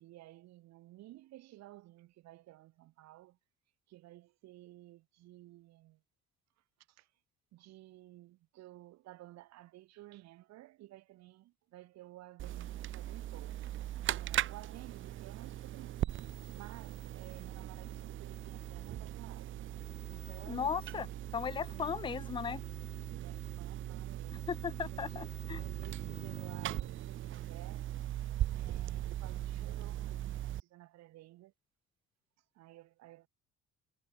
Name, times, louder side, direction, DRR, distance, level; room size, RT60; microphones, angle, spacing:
voice 1, 0.0-3.4 3.9-6.0 6.9-7.1 7.5-13.7 14.1-16.1 16.5-19.5 20.0-21.2 21.7-21.9 23.1-24.5 24.9-28.0 28.5-31.5 32.5-33.3, right 16 dB, 65° right, 5.5 m, -54 dB
sound 1, 12.4-30.6, right 13 dB, 40° right, 1.2 m, -39 dB
voice 2, 20.5-21.1 21.3-22.6 24.5-25.6, left 7 dB, 15° left, 0.4 m, -36 dB
cardioid pair, 175°, 29 cm